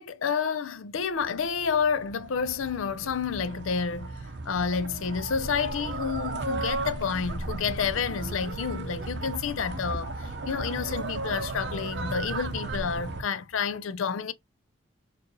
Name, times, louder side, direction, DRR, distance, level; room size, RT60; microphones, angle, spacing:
voice 1, 0.0-4.2 4.5-14.3, left 6 dB, 85° left, 0.5 m, -29 dB
sound 1, 1.2-13.2, right 3 dB, 55° right, 0.6 m, -35 dB
4.4 x 2.6 x 3.0 m
head